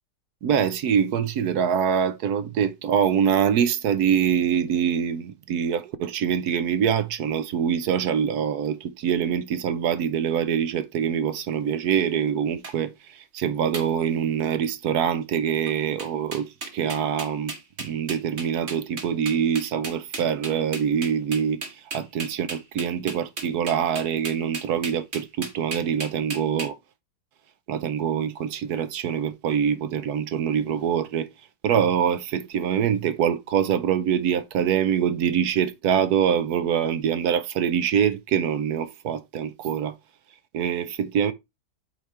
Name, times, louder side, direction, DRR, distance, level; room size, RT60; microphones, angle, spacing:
voice 1, 0.4-26.8 27.7-31.3 31.6-39.9 40.5-41.3, right 8 dB, 70° right, 1.2 m, -24 dB
sound 1, 12.6-12.7 13.7-13.9 14.4-14.7 15.7-15.8 16.0-26.7, right 3 dB, 40° right, 1.6 m, -35 dB
5.8 x 4.9 x 4.3 m
omnidirectional pair, 1.8 m